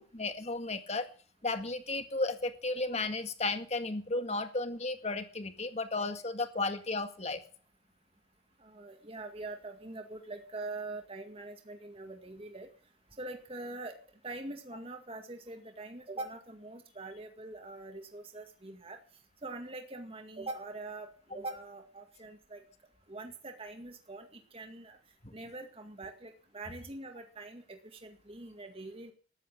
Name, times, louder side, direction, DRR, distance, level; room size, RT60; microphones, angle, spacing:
voice 1, 0.2-1.1 1.4-7.4 25.2-25.4, left 3 dB, 40° left, 9 dB, 1.9 m, -34 dB
voice 2, 8.6-12.7 13.2-19.0 19.4-22.6 23.1-25.0 25.3-29.1, right 2 dB, 30° right, 5 dB, 2.1 m, -44 dB
14.5 x 11.0 x 7.4 m, 0.41 s
head